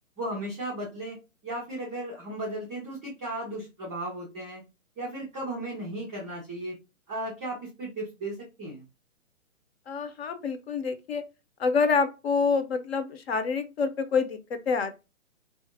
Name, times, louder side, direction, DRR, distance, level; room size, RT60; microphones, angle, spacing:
voice 1, 0.2-1.2 1.4-4.6 5.0-6.8 7.1-8.8, right 1 dB, 5° right, 0.3 m, -35 dB
voice 2, 9.9-11.2 11.6-15.0, left 5 dB, 50° left, 0.6 m, -27 dB
3.5 x 2.5 x 2.6 m
hypercardioid pair, 135°, 39 cm